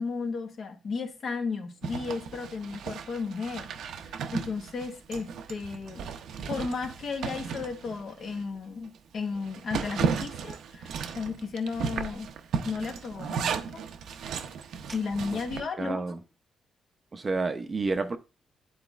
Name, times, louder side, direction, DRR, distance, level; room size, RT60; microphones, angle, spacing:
voice 1, 0.0-6.1 6.5-12.3 12.6-13.8 14.9-16.0, left 4 dB, 50° left, 0.9 m, -34 dB
Zipper (clothing), 1.8-8.4 8.8-8.9 9.3-15.6, right 6 dB, 85° right, 0.5 m, -35 dB
voice 2, 15.8-16.2 17.1-18.2, right 3 dB, 25° right, 0.5 m, -29 dB
9.8 x 4.1 x 2.3 m
wide cardioid pair, 150°, 0 cm